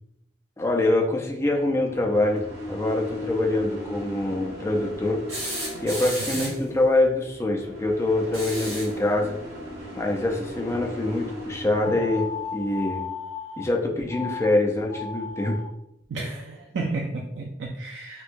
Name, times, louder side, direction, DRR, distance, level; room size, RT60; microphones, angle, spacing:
voice 1, 0.6-5.2 5.8-9.3 9.9-12.3 12.5-13.0 13.6-15.6, left 2 dB, 15° left, 0 dB, 0.4 m, -24 dB
sound 1, 1.4-12.4, left 1 dB, 65° right, 1.5 m, -38 dB
sound 2, 5.3-6.7 8.2-9.0 10.7-10.8 12.2-12.3, right 1 dB, 35° right, 1.0 m, -33 dB
sound 3, 11.8-13.6 14.1-14.5 14.8-15.7, left 5 dB, 5° right, 1.1 m, -35 dB
voice 2, 16.1-18.2, right 3 dB, 80° right, -1 dB, 0.4 m, -32 dB
4.3 x 2.2 x 2.6 m, 0.80 s
head